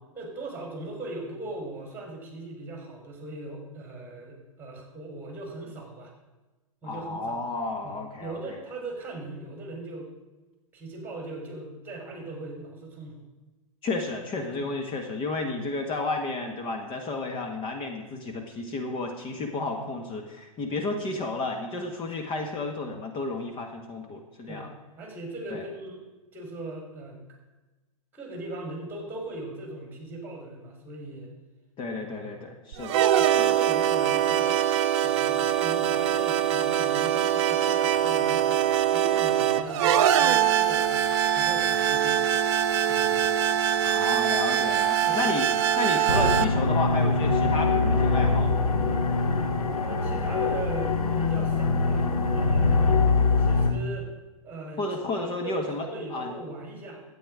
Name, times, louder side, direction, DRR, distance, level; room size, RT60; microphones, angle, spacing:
voice 1, 0.1-6.1 6.8-7.4 7.8-10.1 10.7-13.3 14.6-14.7 24.5-26.0 26.3-27.2 28.1-31.3 32.0-32.6 33.1-34.6 35.0-42.2 42.9-43.6 45.1-45.3 49.8-53.0 53.4-54.1 54.4-57.0, right 2 dB, 10° right, 1 dB, 3.8 m, -39 dB
voice 2, 6.8-8.6 13.8-24.7 25.5-25.6 31.8-33.0 33.4-33.5 43.8-45.5 45.8-48.6 54.8-56.3, left 3 dB, 30° left, 4 dB, 1.5 m, -32 dB
sound 1, 32.7-46.4, right 10 dB, 55° right, 0.8 m, -23 dB
sound 2, 46.1-53.7, left 3 dB, 80° left, 1.5 m, -23 dB
12.5 x 8.5 x 4.9 m, 1.1 s
hypercardioid pair, 110°, 18 cm